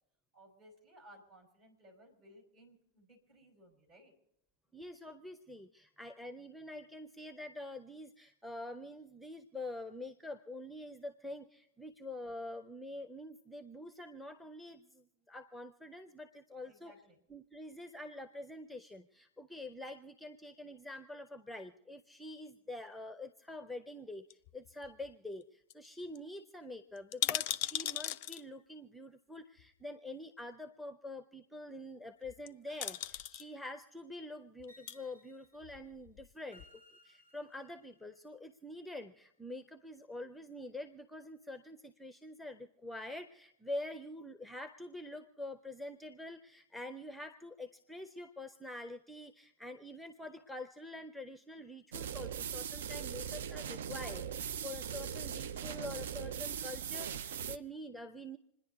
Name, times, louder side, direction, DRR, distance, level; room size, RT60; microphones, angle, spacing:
voice 1, 0.3-4.1 16.6-17.2, equal, 40° right, 1 dB, 5.0 m, -60 dB
voice 2, 4.7-16.9 17.3-36.6 37.0-58.4, left 1 dB, ahead, 10 dB, 0.7 m, -46 dB
sound 1, 24.3-25.1 25.4-25.5 25.7-25.9 26.1-26.2 27.0-28.4 29.6-29.7 32.2-32.5 32.8-33.4 34.6-35.0 35.6-36.3 36.6-36.7, left 13 dB, 45° left, 0.5 m, -37 dB
sound 2, 32.7-34.0 34.7-35.8 36.5-38.0, right 1 dB, 80° right, 2.7 m, -63 dB
sound 3, 51.9-57.6, right 8 dB, 60° right, 0.5 m, -40 dB
27.5 x 10.5 x 4.0 m, 0.78 s
figure-of-eight pair, 90°, 0 cm